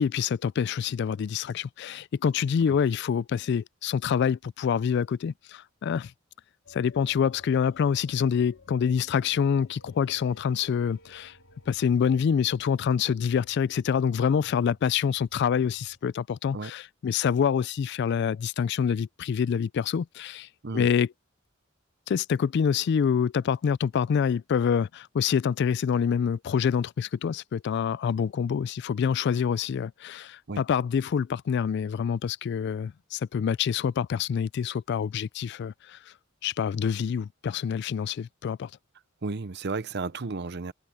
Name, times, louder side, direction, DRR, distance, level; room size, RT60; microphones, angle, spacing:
voice 1, 0.0-6.1 6.7-11.4 11.7-20.5 20.7-21.1 22.1-36.1 36.4-38.7, left 7 dB, 55° left, 0.3 m, -26 dB
sound 1, 6.6-16.0, left 2 dB, 85° left, 3.5 m, -56 dB
voice 2, 39.2-40.7, right 3 dB, 55° right, 0.8 m, -33 dB
head